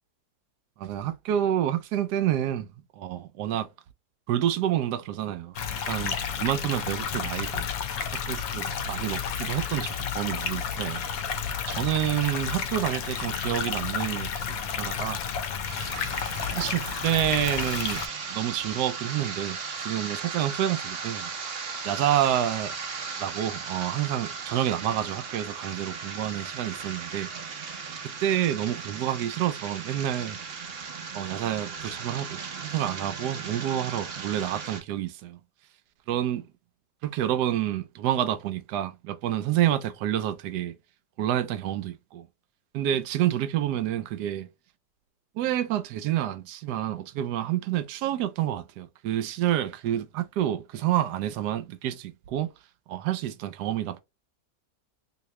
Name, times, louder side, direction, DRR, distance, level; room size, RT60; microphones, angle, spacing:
voice 1, 0.8-2.7 3.0-3.7 4.3-7.7 8.1-11.0 11.7-15.2 16.6-18.0 18.3-21.3 21.8-22.7 23.2-27.3 28.2-30.4 31.1-35.4 36.1-36.5 37.0-40.7 41.2-42.3 42.7-44.5 45.4-52.5 52.9-54.0, right 11 dB, 80° right, 1.1 m, -28 dB
sound 1, 5.6-18.1, left 7 dB, 70° left, 1.0 m, -31 dB
sound 2, 15.7-34.8, right 5 dB, 55° right, 0.7 m, -37 dB
2.9 x 2.9 x 3.1 m
omnidirectional pair, 1.8 m